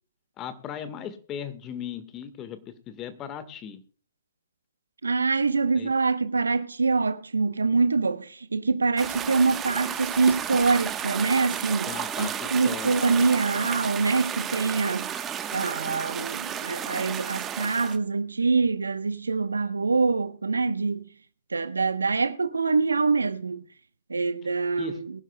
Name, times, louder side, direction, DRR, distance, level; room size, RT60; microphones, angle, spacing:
voice 1, 0.4-3.8 5.7-5.9 11.8-13.0 24.4-24.5 24.8-25.0, left 8 dB, 25° left, 1.5 m, -37 dB
voice 2, 5.0-15.1 15.5-21.1 21.5-23.6 24.1-25.1, right 4 dB, 85° right, 1.0 m, -25 dB
sound 1, 9.0-18.0, right 9 dB, 20° right, 1.1 m, -33 dB
22.5 x 11.0 x 2.2 m
hypercardioid pair, 130°, 0 cm